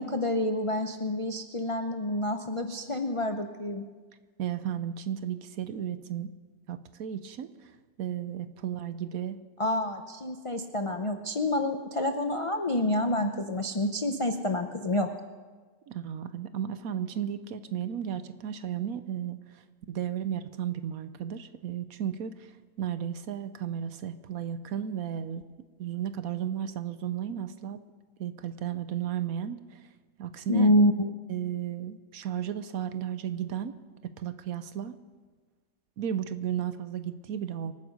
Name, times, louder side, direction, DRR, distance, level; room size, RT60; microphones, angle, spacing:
voice 1, 0.0-3.9 9.6-15.1 30.5-31.1, left 1 dB, 45° left, 5 dB, 0.4 m, -27 dB
voice 2, 4.4-6.3 6.7-7.7 8.0-9.4 15.9-19.6 19.9-22.5 22.8-25.4 25.8-27.8 28.2-29.8 30.2-30.7 31.3-33.7 34.0-34.9 36.0-37.7, right 9 dB, 65° right, 12 dB, 1.1 m, -34 dB
25.5 x 9.4 x 5.3 m, 1.4 s
omnidirectional pair, 1.7 m